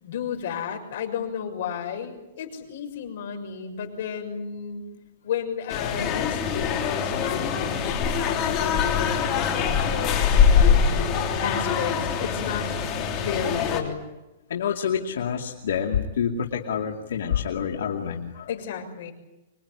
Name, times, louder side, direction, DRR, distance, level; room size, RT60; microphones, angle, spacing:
voice 1, 0.0-4.9 5.2-8.0 8.3-10.2 10.5-11.1 11.4-12.7 13.2-14.0 18.5-19.1, left 7 dB, 50° left, 3 dB, 6.5 m, -33 dB
sound 1, 5.7-13.8, left 6 dB, 25° left, 3.3 m, -23 dB
voice 2, 14.5-18.5, left 7 dB, 75° left, 1 dB, 2.6 m, -27 dB
26.0 x 22.5 x 9.9 m, 0.99 s
supercardioid pair, 175°, 0 cm